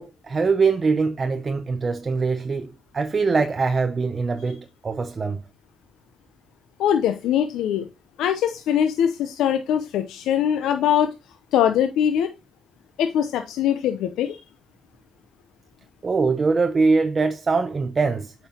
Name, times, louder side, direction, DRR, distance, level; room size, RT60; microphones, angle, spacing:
voice 1, 0.0-5.4 16.0-18.3, right 4 dB, 35° right, 0.6 m, -23 dB
voice 2, 6.8-7.9 8.2-11.1 11.5-12.3 13.0-14.4, left 9 dB, 85° left, 0.7 m, -22 dB
8.3 x 5.4 x 2.9 m
cardioid pair, 90°, 0 cm